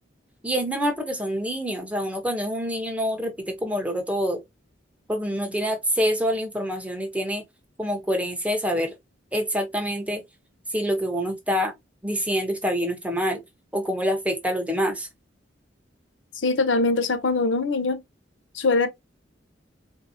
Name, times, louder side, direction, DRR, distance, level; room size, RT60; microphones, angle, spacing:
voice 1, 0.4-4.4 5.1-7.4 7.8-8.9 9.3-10.2 10.7-11.7 12.0-13.4 13.7-15.1, equal, 10° right, 0.9 m, -26 dB
voice 2, 16.3-18.0 18.5-18.9, left 3 dB, 80° left, 0.6 m, -22 dB
3.9 x 2.8 x 2.7 m
head